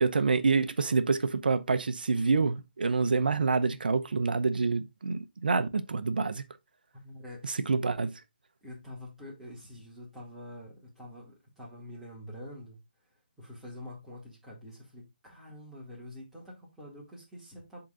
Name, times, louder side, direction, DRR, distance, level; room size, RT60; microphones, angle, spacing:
voice 1, 0.0-6.4 7.4-8.1, right 4 dB, 65° right, 0.8 m, -27 dB
voice 2, 6.9-7.5 8.6-12.8 13.4-17.8, left 1 dB, ahead, 2.1 m, -46 dB
11.5 x 3.9 x 2.5 m
figure-of-eight pair, 160°, 5 cm